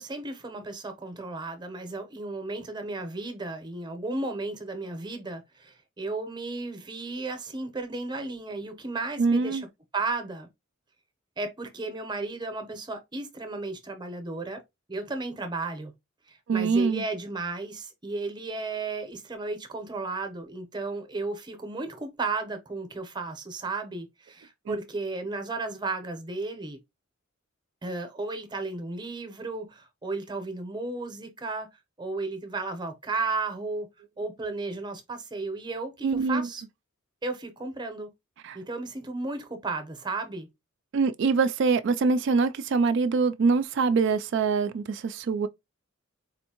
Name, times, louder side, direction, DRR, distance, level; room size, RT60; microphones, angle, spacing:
voice 1, 0.0-9.7 9.9-10.5 11.4-14.6 14.9-15.9 16.3-26.8 27.8-31.7 32.0-33.9 34.2-36.6 37.2-38.1 38.5-40.5, right 3 dB, 20° right, 0.7 m, -34 dB
voice 2, 9.2-9.6 16.5-17.0 24.7-24.8 36.0-36.5 38.4-38.6 40.9-45.5, right 4 dB, 60° right, 0.3 m, -24 dB
4.2 x 2.6 x 2.8 m
head